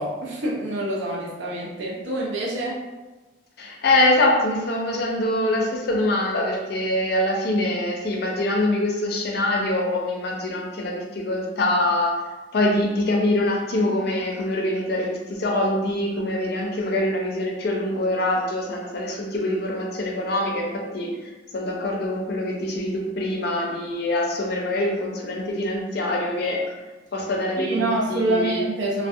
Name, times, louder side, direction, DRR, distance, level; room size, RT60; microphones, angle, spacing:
voice 1, 0.0-2.8 27.6-29.1, right 1 dB, 70° right, -3 dB, 0.5 m, -26 dB
voice 2, 3.6-12.1 12.5-21.1 21.5-26.6 27.1-28.6, left 1 dB, 55° left, 0 dB, 0.5 m, -24 dB
2.3 x 2.1 x 2.6 m, 1.2 s
head